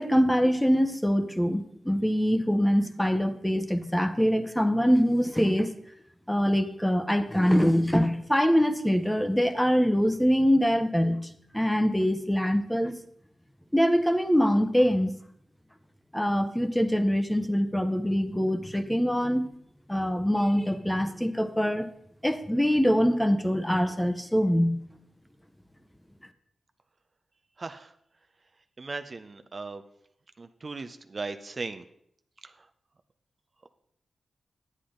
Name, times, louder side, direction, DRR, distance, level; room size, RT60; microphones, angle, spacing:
voice 1, 0.0-5.7 6.3-11.3 11.5-13.0 13.7-15.1 16.1-19.5 19.9-21.9 22.2-24.8, equal, 5° left, 10 dB, 0.8 m, -24 dB
voice 2, 27.6-27.9 28.8-29.8 30.4-31.8, right 3 dB, 45° right, 9 dB, 0.6 m, -37 dB
9.7 x 8.4 x 3.8 m, 0.70 s
cardioid pair, 55°, 0 cm